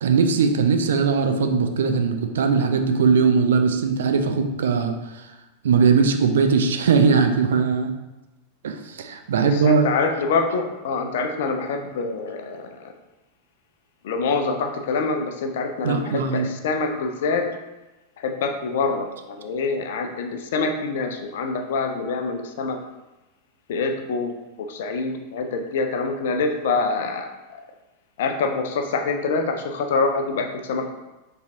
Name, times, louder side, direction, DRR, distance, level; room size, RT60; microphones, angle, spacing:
voice 1, 0.0-5.3 5.6-7.9 8.6-9.9 15.8-16.5, right 5 dB, 60° right, 6 dB, 0.3 m, -20 dB
voice 2, 9.5-12.9 14.0-17.5 18.2-22.8 23.7-27.3 28.2-30.9, left 4 dB, 55° left, 5 dB, 0.4 m, -25 dB
4.7 x 3.2 x 2.7 m, 1.0 s
figure-of-eight pair, 90°, 0 cm